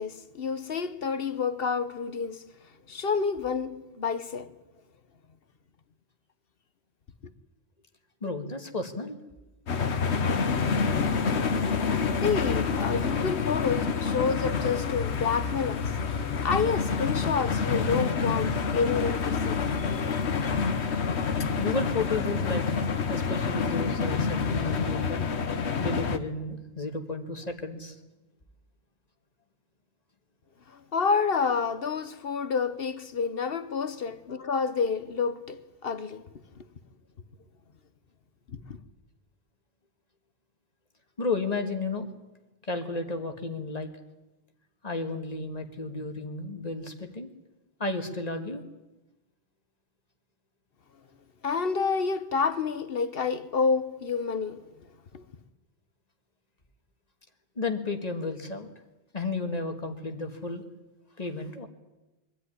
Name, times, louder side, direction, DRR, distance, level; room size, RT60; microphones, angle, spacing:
voice 1, 0.0-2.4 2.9-4.5 12.1-15.9 16.4-19.9 30.7-36.3 38.5-38.8 51.4-54.6 55.1-55.2, left 5 dB, 60° left, 1.3 m, -29 dB
voice 2, 8.2-9.2 21.6-22.7 23.1-25.3 25.8-28.0 41.2-42.1 42.6-43.9 44.8-47.3 47.8-48.6 57.6-58.7 59.1-60.6 61.2-61.7, left 3 dB, 35° left, 2.0 m, -33 dB
sound 1, 9.7-26.2, left 5 dB, 85° left, 1.4 m, -27 dB
23.5 x 13.0 x 9.9 m
omnidirectional pair, 1.1 m